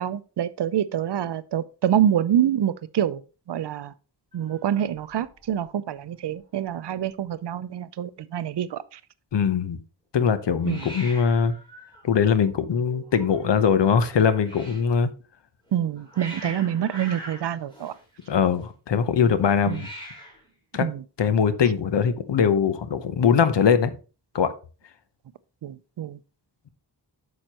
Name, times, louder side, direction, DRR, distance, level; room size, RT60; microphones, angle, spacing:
voice 1, 0.0-3.2 3.5-3.9 4.3-9.0 10.6-10.9 15.7-18.0 19.7-19.9 20.8-21.0 25.6-26.2, right 10 dB, 75° right, 0.6 m, -26 dB
Hiss, 4.3-5.7 5.9-6.4 6.6-6.7 6.9-7.6 10.6-14.9 15.7-18.6 19.5-20.5, equal, 10° left, 3.3 m, -44 dB
voice 2, 9.3-9.8 10.1-11.5 12.0-15.1 18.3-19.9 20.7-20.8 21.2-23.9 24.3-24.5, left 7 dB, 85° left, 0.8 m, -21 dB
8.9 x 6.5 x 2.9 m
wide cardioid pair, 125°, 42 cm